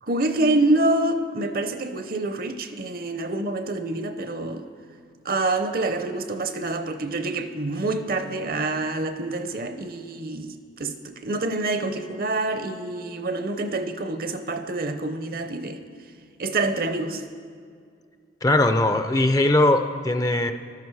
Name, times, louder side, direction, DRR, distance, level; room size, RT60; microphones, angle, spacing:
voice 1, 0.0-4.7 5.2-15.8 16.4-17.2, right 2 dB, 50° right, 9 dB, 0.7 m, -26 dB
voice 2, 18.4-20.5, left 1 dB, 20° left, 8 dB, 0.5 m, -20 dB
14.5 x 12.5 x 4.7 m, 2.2 s
head